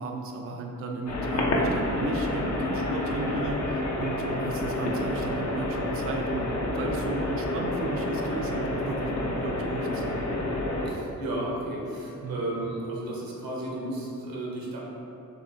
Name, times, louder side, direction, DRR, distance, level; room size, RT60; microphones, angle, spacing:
voice 1, 0.0-10.2 12.2-12.4, right 3 dB, 40° right, 1 dB, 0.4 m, -35 dB
sound 1, 1.1-10.9, left 1 dB, 50° left, 0.8 m, -29 dB
voice 2, 10.8-14.8, right 1 dB, 85° right, -3 dB, 1.1 m, -33 dB
6.4 x 3.0 x 2.7 m, 2.9 s
cardioid pair, 90°, 34 cm